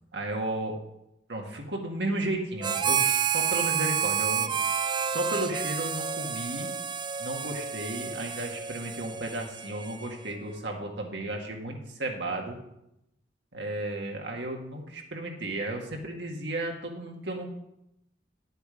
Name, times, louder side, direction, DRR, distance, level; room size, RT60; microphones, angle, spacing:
voice 1, 0.1-0.8 1.3-4.5 5.1-6.7 7.2-12.6 13.5-17.5, right 1 dB, 80° right, 1 dB, 1.8 m, -34 dB
Harmonica, 2.6-10.3, right 7 dB, 25° right, 0.4 m, -30 dB
10.0 x 7.8 x 5.1 m, 0.83 s
head